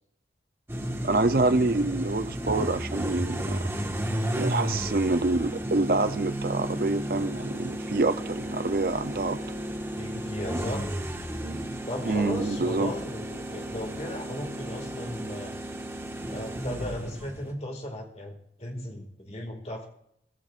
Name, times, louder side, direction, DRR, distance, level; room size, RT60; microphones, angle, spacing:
sound 1, 0.7-17.5, right 1 dB, 15° right, 1.5 m, -33 dB
voice 1, 1.0-3.7 4.4-9.4 12.1-12.9, right 2 dB, 55° right, 0.6 m, -26 dB
voice 2, 4.2-4.5 9.9-10.9 11.8-15.6 16.3-19.9, equal, 35° left, 2.1 m, -36 dB
23.0 x 13.5 x 2.5 m
head